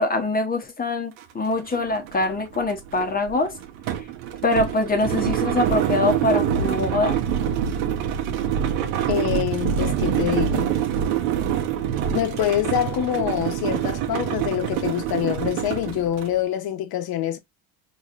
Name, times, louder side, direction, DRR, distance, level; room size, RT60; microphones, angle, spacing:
voice 1, 0.0-3.5 4.4-7.2, left 2 dB, 20° left, 1.1 m, -24 dB
sound 1, 1.2-1.3 1.6-16.4, right 9 dB, 85° right, 1.1 m, -25 dB
voice 2, 9.1-10.8 12.1-17.4, left 12 dB, 50° left, 1.0 m, -25 dB
4.3 x 3.1 x 2.5 m
cardioid pair, 115°, 47 cm